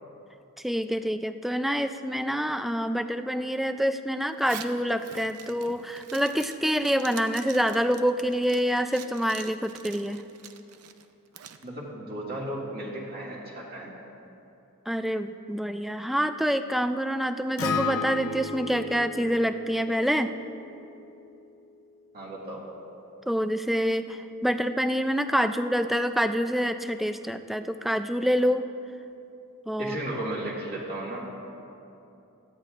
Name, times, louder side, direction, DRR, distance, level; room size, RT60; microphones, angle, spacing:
voice 1, 0.6-10.2 14.9-20.3 23.3-28.7 29.7-30.0, equal, ahead, 9 dB, 0.3 m, -26 dB
Zipper (clothing), 4.3-11.6, right 9 dB, 90° right, 0.6 m, -46 dB
voice 2, 11.6-13.9 22.1-22.7 29.8-31.3, right 1 dB, 45° right, -5 dB, 2.1 m, -35 dB
Acoustic guitar, 17.6-21.8, left 5 dB, 65° left, 0.8 m, -34 dB
17.5 x 13.5 x 2.5 m, 2.8 s
head